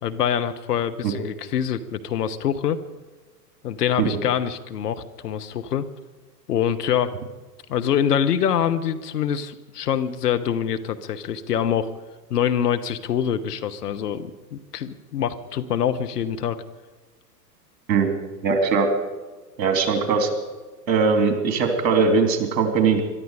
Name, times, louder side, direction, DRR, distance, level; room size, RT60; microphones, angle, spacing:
voice 1, 0.0-2.8 3.6-5.8 6.5-7.1 7.7-11.9 12.3-16.6, left 9 dB, 70° left, 9 dB, 1.3 m, -25 dB
voice 2, 18.4-18.9 19.6-20.3 20.9-23.0, right 5 dB, 55° right, 5 dB, 3.4 m, -20 dB
22.5 x 12.5 x 5.1 m, 1.2 s
figure-of-eight pair, 95°, 50 cm